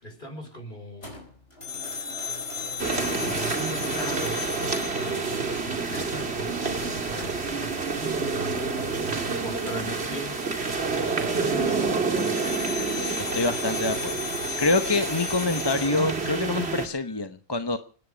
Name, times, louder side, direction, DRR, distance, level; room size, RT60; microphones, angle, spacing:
voice 1, 0.0-1.2 3.2-8.0 9.0-10.5 10.8-12.8, right 1 dB, 45° left, 5 dB, 5.0 m, -40 dB
sound 1, 1.0-6.0 7.0-7.6 11.5-17.0, left 5 dB, 60° left, 5.0 m, -36 dB
sound 2, 2.8-16.9, right 4 dB, 65° right, 2.6 m, -28 dB
voice 2, 13.2-14.2 14.6-17.8, left 3 dB, 25° left, 10 dB, 0.9 m, -26 dB
26.5 x 10.5 x 5.1 m, 0.41 s
omnidirectional pair, 1.2 m